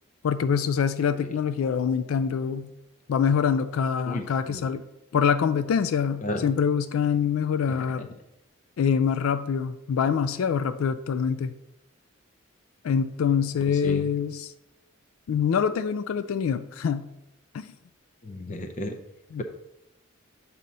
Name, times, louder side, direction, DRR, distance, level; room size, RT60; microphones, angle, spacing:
voice 1, 0.2-2.7 3.1-4.8 5.1-8.1 8.8-11.5 12.8-14.5 15.3-17.1 17.5-17.7 19.3-19.4, left 7 dB, 85° left, 12 dB, 0.3 m, -25 dB
voice 2, 4.1-4.6 6.2-6.4 13.8-14.1 18.2-19.0, left 1 dB, 35° left, 6 dB, 0.5 m, -33 dB
7.5 x 2.8 x 5.3 m, 0.88 s
head